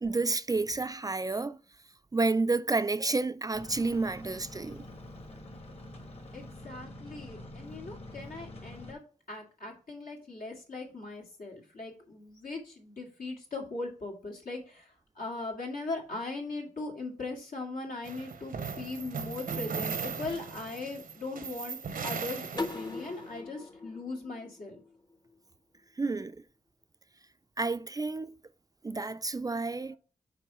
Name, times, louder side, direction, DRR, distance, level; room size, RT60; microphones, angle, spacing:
voice 1, 0.0-1.6 2.1-4.9 26.0-26.4 27.6-28.4 28.8-30.0, right 3 dB, 25° right, 0.3 m, -30 dB
sound 1, 3.5-8.9, left 1 dB, 45° left, 1.5 m, -46 dB
voice 2, 6.3-9.0 9.3-24.8, left 3 dB, 80° left, 2.2 m, -39 dB
sound 2, 18.0-23.2, right 5 dB, 80° right, 0.7 m, -38 dB
sound 3, 22.6-25.4, left 3 dB, 30° left, 0.7 m, -40 dB
6.1 x 4.3 x 4.8 m
wide cardioid pair, 75°, 14 cm